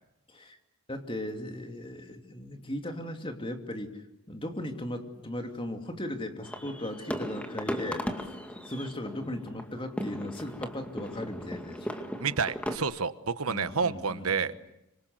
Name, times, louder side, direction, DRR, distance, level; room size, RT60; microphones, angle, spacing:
voice 1, 0.9-3.9 4.3-8.3 8.7-12.0 13.5-14.5, left 1 dB, 25° left, 5 dB, 2.8 m, -37 dB
sound 1, 6.4-12.8, equal, 5° left, 2.2 m, -37 dB
voice 2, 12.2-14.5, right 5 dB, 85° right, 13 dB, 1.2 m, -29 dB
26.5 x 25.5 x 8.0 m, 0.88 s
head